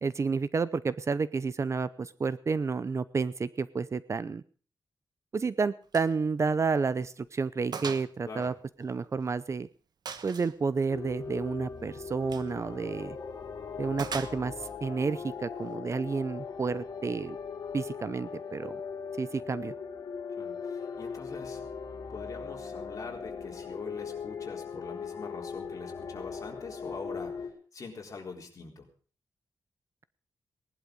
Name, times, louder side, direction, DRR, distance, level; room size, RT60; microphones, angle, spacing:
voice 1, 0.0-4.4 5.3-8.5 8.8-9.7 10.2-13.2 13.8-14.5 14.8-17.4 17.7-18.7 19.2-19.7, right 4 dB, 40° right, 16 dB, 0.6 m, -30 dB
Gunshot gunfire, 5.9-6.1 6.5-6.6 7.1-7.2 7.7-8.1 8.4-9.4 10.1-10.6 12.2-12.5 14.0-14.7, right 6 dB, 60° right, 1.2 m, -39 dB
sound 1, 10.9-27.5, left 5 dB, 60° left, 3.7 m, -39 dB
voice 2, 20.4-21.6 22.1-27.3 27.7-28.9, left 4 dB, 45° left, 1 dB, 3.9 m, -43 dB
19.0 x 11.5 x 5.2 m, 0.41 s
wide cardioid pair, 140°, 8 cm